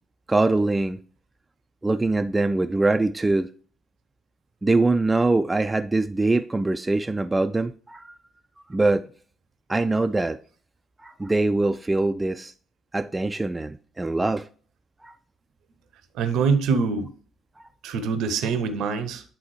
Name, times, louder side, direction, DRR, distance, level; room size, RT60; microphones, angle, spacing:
voice 1, 0.3-1.0 1.8-3.5 4.6-8.1 8.7-9.1 9.7-10.4 11.0-12.5 12.9-14.5 15.0-15.2, right 2 dB, 15° right, 0.3 m, -23 dB
voice 2, 16.1-17.1 17.8-19.2, right 5 dB, 60° right, 0.6 m, -24 dB
8.8 x 3.8 x 3.1 m
figure-of-eight pair, 45°, 0 cm